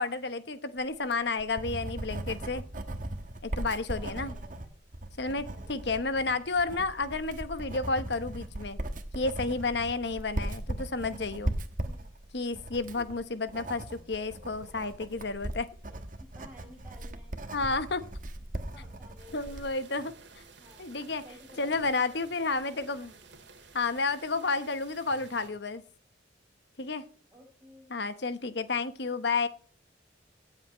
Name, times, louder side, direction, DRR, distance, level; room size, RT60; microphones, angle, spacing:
voice 1, 0.0-2.6 3.4-4.3 5.2-8.8 9.1-11.5 12.3-15.7 17.5-18.0 19.3-20.1 20.8-21.2 21.6-23.1 23.7-25.8 26.8-27.0 27.9-29.5, left 3 dB, 60° left, 12 dB, 1.0 m, -31 dB
Writing, 0.9-19.7, right 1 dB, 45° right, 1.3 m, -38 dB
voice 2, 3.9-4.8 5.2-6.3 10.1-10.3 11.9-12.1 12.9-13.0 15.1-15.2 15.9-17.5 18.6-19.6 20.6-20.9 21.2-23.3 27.3-27.9, equal, 10° right, -2 dB, 5.7 m, -55 dB
sound 1, 19.2-25.5, right 4 dB, 70° right, 2.2 m, -53 dB
17.5 x 8.0 x 3.1 m, 0.42 s
head